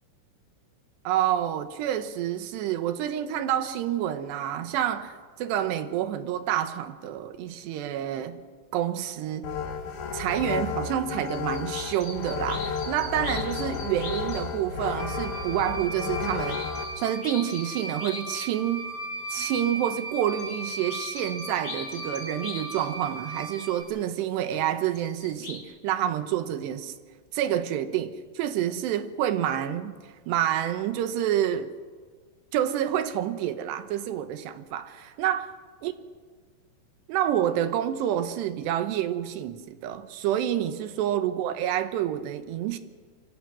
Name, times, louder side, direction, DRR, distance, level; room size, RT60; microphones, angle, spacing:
voice 1, 1.0-8.4 8.7-9.5 10.1-16.6 17.0-18.8 19.3-26.9 27.3-31.7 32.5-35.5 35.8-35.9 37.1-42.8, right 11 dB, 75° right, 2.8 m, -28 dB
sound 1, 9.4-16.8, left 6 dB, 55° left, 3.4 m, -32 dB
sound 2, 10.8-10.9 11.2-14.6 15.9-18.6 18.9-19.7 20.0-23.0 24.0-24.1 24.9-25.6, left 3 dB, 30° left, 3.0 m, -42 dB
sound 3, 15.0-23.8, right 1 dB, 30° right, 6.4 m, -37 dB
27.0 x 25.0 x 6.2 m
omnidirectional pair, 5.8 m